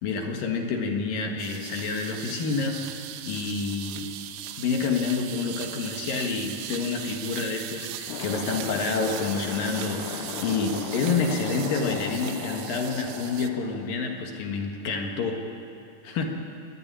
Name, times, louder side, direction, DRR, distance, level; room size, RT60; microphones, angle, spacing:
voice 1, 0.0-2.9 3.3-4.1 4.6-15.4 16.0-16.2, left 4 dB, 60° left, 3 dB, 3.0 m, -28 dB
sound 1, 1.4-13.5, right 12 dB, 80° right, 3.1 m, -38 dB
sound 2, 8.0-14.5, left 11 dB, 80° left, 2.7 m, -37 dB
25.5 x 12.0 x 9.9 m, 2.6 s
omnidirectional pair, 5.2 m